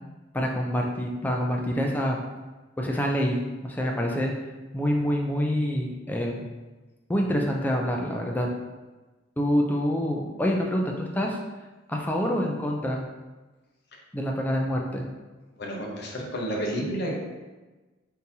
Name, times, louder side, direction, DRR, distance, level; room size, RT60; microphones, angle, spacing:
voice 1, 0.3-2.2 2.8-3.4 3.6-4.3 4.7-6.4 7.1-8.5 9.4-11.4 11.9-13.0 14.1-15.1, equal, 10° left, 0 dB, 0.3 m, -26 dB
voice 2, 15.6-17.2, equal, 55° left, -2 dB, 0.7 m, -30 dB
3.7 x 2.7 x 2.7 m, 1.2 s
head